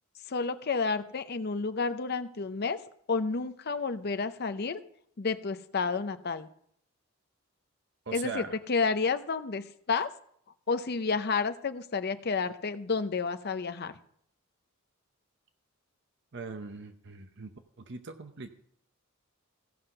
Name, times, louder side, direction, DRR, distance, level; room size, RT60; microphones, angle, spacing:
voice 1, 0.3-2.8 3.1-4.8 5.2-6.5 8.1-10.1 10.7-13.9, left 4 dB, 50° left, 11 dB, 0.6 m, -30 dB
voice 2, 8.1-8.6 16.3-17.5 17.8-18.5, right 4 dB, 55° right, 8 dB, 0.7 m, -40 dB
15.5 x 5.8 x 5.4 m, 0.65 s
head